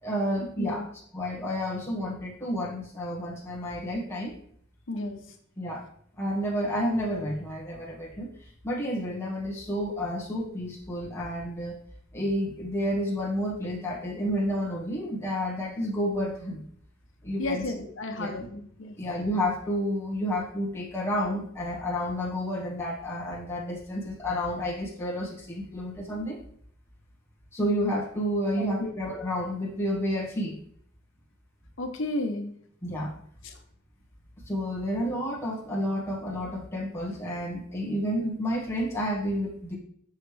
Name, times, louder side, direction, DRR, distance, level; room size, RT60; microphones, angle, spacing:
voice 1, 0.0-4.3 5.6-5.8 6.2-11.8 12.1-16.6 17.2-17.8 18.2-18.5 19.0-26.4 27.5-30.6 32.8-33.1 34.5-39.8, equal, 15° left, -5 dB, 1.5 m, -30 dB
voice 2, 4.9-5.2 17.4-18.9 28.8-28.9 31.8-32.5, left 2 dB, 70° left, 5 dB, 1.0 m, -32 dB
6.5 x 6.5 x 3.4 m, 0.63 s
head